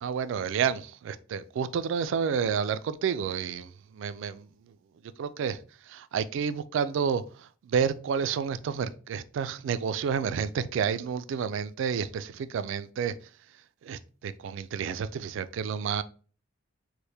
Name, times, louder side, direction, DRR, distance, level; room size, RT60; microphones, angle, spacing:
voice 1, 0.0-4.4 5.2-5.6 5.9-7.2 7.7-13.1 13.8-16.0, right 7 dB, 70° right, 0.3 m, -30 dB
4.4 x 2.1 x 3.2 m
head